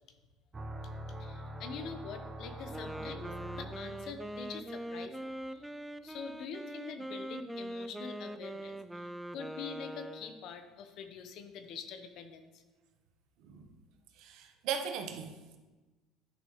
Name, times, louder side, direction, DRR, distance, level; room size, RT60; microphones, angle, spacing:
sound 1, 0.5-4.4, right 1 dB, 20° right, 0.7 m, -44 dB
voice 1, 1.2-12.6, left 6 dB, 60° left, 8 dB, 0.9 m, -45 dB
Wind instrument woodwind instrument, 2.6-10.5, right 1 dB, 5° right, 0.3 m, -42 dB
voice 2, 14.2-15.6, right 7 dB, 70° right, 5 dB, 0.9 m, -38 dB
10.0 x 6.0 x 3.1 m, 1.2 s
supercardioid pair, 100°, 0 cm